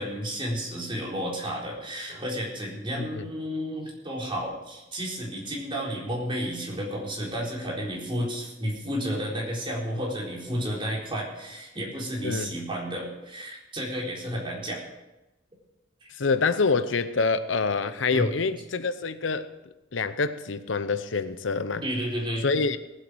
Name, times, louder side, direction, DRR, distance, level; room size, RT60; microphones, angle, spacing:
voice 1, 0.0-14.8 16.0-16.1 18.1-18.3 21.8-22.4, equal, 30° right, 4.1 m, -32 dB
voice 2, 12.2-12.5 16.1-19.5 19.9-21.8 22.4-22.8, left 4 dB, 80° left, 0.8 m, -26 dB
18.0 x 8.3 x 6.3 m
head